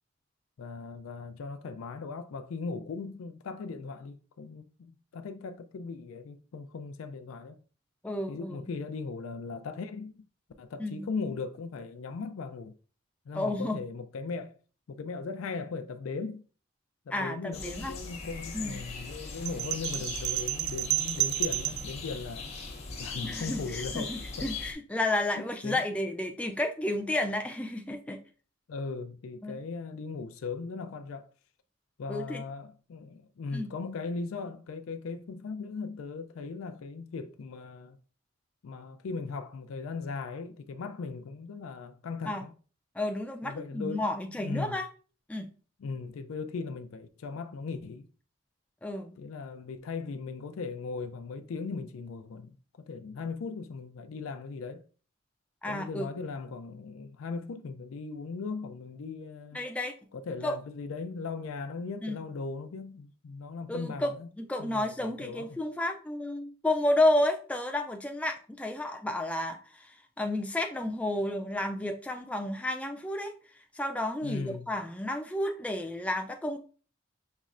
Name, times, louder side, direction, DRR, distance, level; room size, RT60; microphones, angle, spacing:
voice 1, 0.6-7.6 8.3-10.2 10.6-12.7 13.3-14.6 14.9-16.4 17.1-22.5 23.0-24.5 25.4-25.8 28.7-31.3 32.0-38.0 38.6-42.5 43.4-44.8 45.8-48.1 49.2-54.8 55.6-59.6 60.1-64.3 64.6-65.5 74.2-74.7, left 4 dB, 90° left, 0.4 m, -38 dB
voice 2, 8.0-8.6 10.8-11.1 13.3-13.8 17.1-17.9 18.5-18.8 23.2-28.2 29.4-29.6 32.1-32.4 33.5-33.7 42.3-42.4 43.0-44.9 45.3-45.5 48.8-49.1 55.6-56.3 59.5-59.9 60.4-60.6 62.0-62.2 63.7-73.3 73.7-76.6, left 1 dB, 5° left, 0.3 m, -31 dB
sound 1, 17.5-24.7, left 4 dB, 30° left, 0.7 m, -40 dB
sound 2, 19.5-21.9, right 15 dB, 90° right, 0.4 m, -31 dB
5.4 x 3.0 x 2.4 m
head